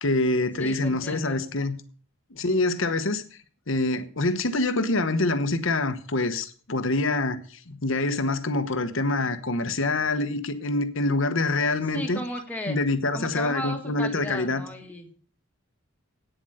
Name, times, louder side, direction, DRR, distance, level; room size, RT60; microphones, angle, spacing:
voice 1, 0.0-1.8 2.3-3.2 3.7-12.2 12.7-14.6, left 2 dB, 60° left, 1.1 m, -25 dB
voice 2, 0.6-1.4 11.9-12.8 13.1-15.1, equal, 10° left, 2.0 m, -35 dB
9.2 x 7.7 x 7.8 m
head